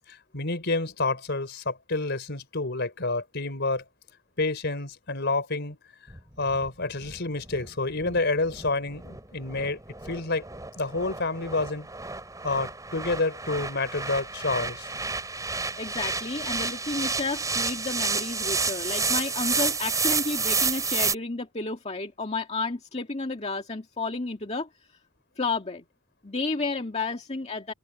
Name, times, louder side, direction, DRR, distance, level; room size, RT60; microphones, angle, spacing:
voice 1, 0.1-3.8 4.4-5.8 6.4-9.8 10.0-10.5 10.8-11.9 12.4-14.9, left 3 dB, 55° left, 4.4 m, -29 dB
sound 1, 6.1-21.2, right 4 dB, 15° right, 4.3 m, -30 dB
voice 2, 15.8-24.7 25.4-25.9 26.2-27.7, left 3 dB, 30° left, 1.9 m, -31 dB
head